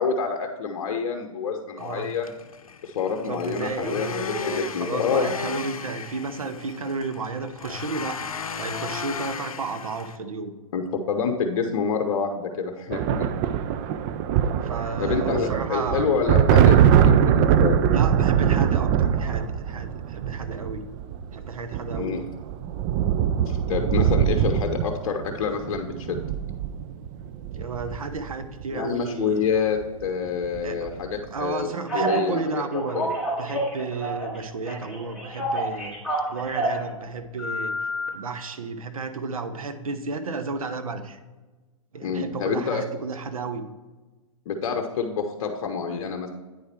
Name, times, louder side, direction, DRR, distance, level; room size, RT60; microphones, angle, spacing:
voice 1, 0.0-2.3 2.8-4.1 4.5-5.3 10.7-13.3 15.0-17.8 22.0-22.2 23.5-26.2 28.7-31.7 31.9-32.4 32.7-33.2 42.0-42.9 44.5-46.3, left 5 dB, 55° left, 4 dB, 0.8 m, -27 dB
sound 1, 1.8-10.2, left 6 dB, 85° left, 0.6 m, -36 dB
voice 2, 1.8-2.1 3.3-10.5 14.6-16.3 17.9-20.8 21.3-22.2 27.5-29.4 30.6-30.9 31.3-33.0 33.4-36.0 36.3-37.8 38.1-41.2 41.9-43.7, right 4 dB, 85° right, 9 dB, 0.9 m, -32 dB
sound 2, 12.9-28.6 29.8-30.1 30.3-31.0, right 9 dB, 30° right, 0.4 m, -22 dB
Telephone, 31.9-32.2 32.7-34.4 34.7-36.8 37.4-38.1, right 1 dB, 5° right, 2.6 m, -28 dB
9.3 x 4.8 x 4.4 m, 1.2 s
hypercardioid pair, 125°, 18 cm